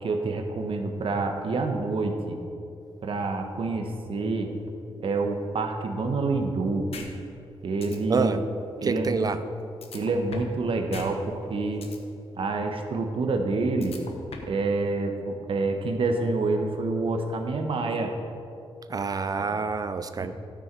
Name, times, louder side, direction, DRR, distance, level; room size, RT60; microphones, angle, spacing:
voice 1, 0.0-2.4 3.0-4.5 5.0-6.9 7.6-8.4 8.8-9.4 9.9-11.9 12.4-14.0 14.5-18.1 19.4-19.6 20.2-20.3, right 3 dB, 65° right, 4 dB, 1.0 m, -27 dB
sound 1, 6.9-7.1 7.4-7.5 7.8-8.0 9.8-10.6 10.9-11.1 11.4-12.0 13.8-14.6, left 5 dB, 80° left, 1.1 m, -40 dB
voice 2, 8.8-9.4 18.9-20.3, right 4 dB, 40° right, 11 dB, 0.4 m, -27 dB
13.0 x 6.4 x 4.6 m, 2.7 s
wide cardioid pair, 120°, 10 cm